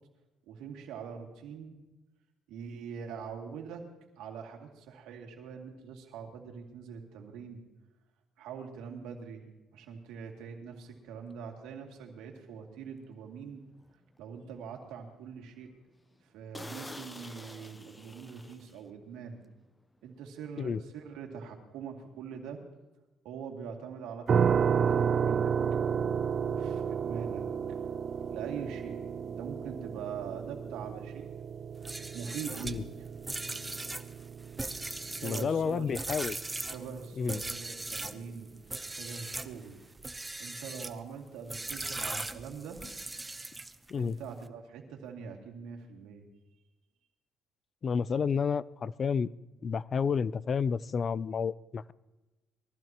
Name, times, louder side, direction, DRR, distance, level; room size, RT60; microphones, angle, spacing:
voice 1, 0.5-1.8 2.5-7.6 8.4-13.6 14.2-15.7 16.2-19.4 20.0-22.6 23.2-25.5 26.4-27.8 28.3-31.3 31.8-31.9 32.1-33.1 35.2-36.0 36.6-38.5 38.9-39.8 40.4-42.8 43.9-46.2, right 6 dB, 90° right, 2 dB, 2.5 m, -43 dB
sound 1, 11.3-11.4 12.0-12.2 12.7-12.8 13.2-13.3 13.7-14.3 14.7-14.8 15.2-15.4 15.6-15.7 16.1-16.2 16.5-19.1 19.3-19.6, left 2 dB, 15° left, 0.8 m, -47 dB
sound 2, 24.3-37.1, right 7 dB, 50° right, 0.6 m, -32 dB
sound 3, 31.8-38.2 38.7-39.5 40.0-41.0 41.5-43.9, right 2 dB, 15° right, 0.8 m, -39 dB
voice 2, 35.2-36.4 37.2-37.4 43.9-44.2 47.8-49.3 49.6-51.9, left 6 dB, 45° left, 19 dB, 0.4 m, -30 dB
22.0 x 15.0 x 3.0 m, 1.1 s
cardioid pair, 100°, 0 cm